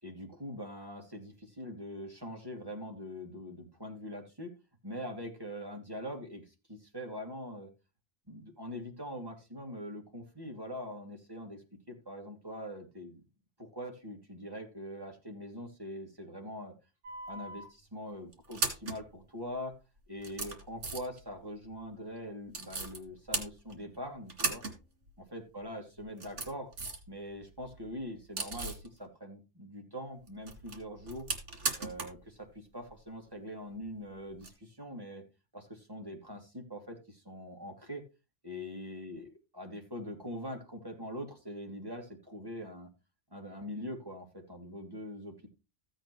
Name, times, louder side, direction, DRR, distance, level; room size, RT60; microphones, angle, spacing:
voice 1, 0.0-4.5 4.8-7.7 8.3-13.2 13.6-16.7 17.3-19.7 20.1-24.6 25.3-26.7 27.1-31.3 31.8-35.2 35.5-38.0 38.4-42.9 43.3-45.5, equal, 20° right, 2 dB, 2.6 m, -43 dB
sound 1, 17.0-17.7 18.3-19.0 19.7-19.8 20.2-21.2 22.5-23.0 23.3-24.0 24.3-24.8 25.1-25.2 26.0-27.1 27.4-28.9 30.3-32.2 32.5-32.6 34.4-34.5, right 3 dB, 85° right, 2.4 m, -37 dB
14.5 x 8.0 x 3.1 m, 0.28 s
omnidirectional pair, 1.2 m